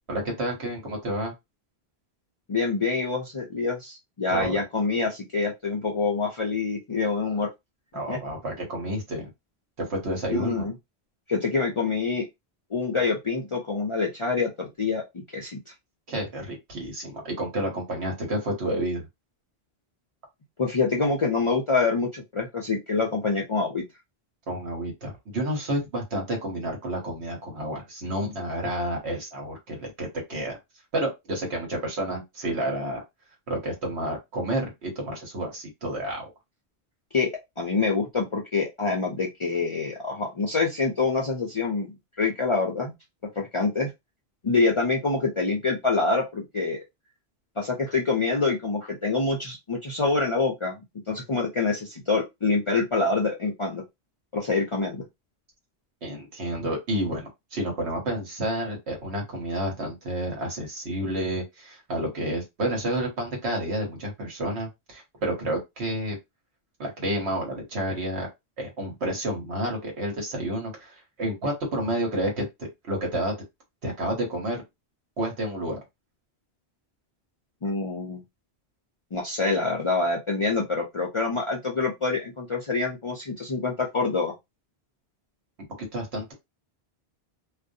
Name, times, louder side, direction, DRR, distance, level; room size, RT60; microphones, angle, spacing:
voice 1, 0.1-1.3 4.3-4.6 7.9-9.3 9.8-10.7 16.1-19.1 24.5-30.6 30.9-33.0 33.5-36.3 56.0-66.2 66.8-68.3 68.6-73.3 73.8-74.6 75.2-75.8 85.8-86.3, right 1 dB, 85° right, 1.3 m, -30 dB
voice 2, 2.5-7.5 8.1-8.2 10.3-10.7 11.3-12.2 12.7-15.6 20.6-23.8 37.1-37.3 37.6-42.9 43.4-43.9 44.4-46.8 47.6-53.8 54.3-55.0 77.6-78.2 79.1-84.3, left 4 dB, 50° left, 0.4 m, -26 dB
2.5 x 2.1 x 2.6 m
omnidirectional pair, 1.1 m